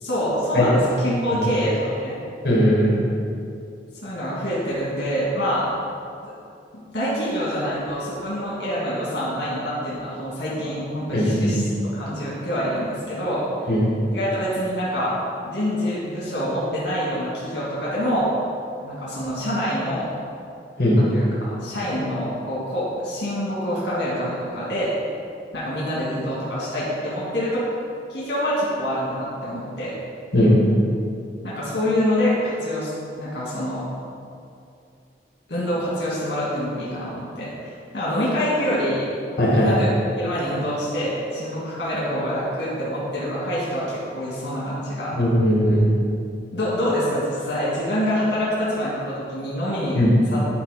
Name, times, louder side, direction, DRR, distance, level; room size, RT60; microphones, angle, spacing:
voice 1, 0.0-2.2 4.0-5.7 6.7-11.6 11.9-13.7 14.1-15.1 15.4-18.3 18.8-20.1 21.0-24.9 25.5-27.6 28.1-29.9 31.4-32.9 33.2-33.8 35.5-39.1 39.5-39.9 40.2-45.1 46.5-50.0 50.3-50.4, equal, 75° left, -7 dB, 1.8 m, -26 dB
voice 2, 2.4-3.0 11.1-11.5 13.7-13.9 20.8-21.0 30.3-30.6 39.4-39.7 45.1-45.9 49.9-50.1, equal, 55° left, -4 dB, 2.0 m, -18 dB
9.9 x 4.1 x 4.9 m, 2.5 s
head